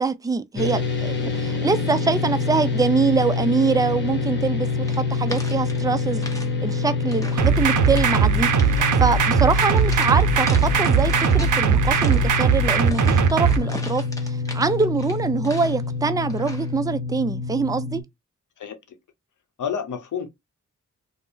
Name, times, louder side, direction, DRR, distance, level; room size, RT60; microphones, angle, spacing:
voice 1, 0.0-6.2 6.6-8.5 9.0-18.0, right 4 dB, 10° right, 0.3 m, -24 dB
sound 1, 0.6-18.0, left 4 dB, 35° left, 1.0 m, -26 dB
sound 2, 4.8-6.5 6.8-7.5 7.8-8.2 8.6-9.0 9.5-11.6 11.9-15.9 16.3-16.7, left 1 dB, 10° left, 0.8 m, -39 dB
sound 3, 7.4-13.6, right 7 dB, 75° right, 0.5 m, -19 dB
voice 2, 18.6-19.0 19.6-20.3, left 7 dB, 75° left, 0.7 m, -30 dB
2.5 x 2.0 x 3.6 m
cardioid pair, 60°, 31 cm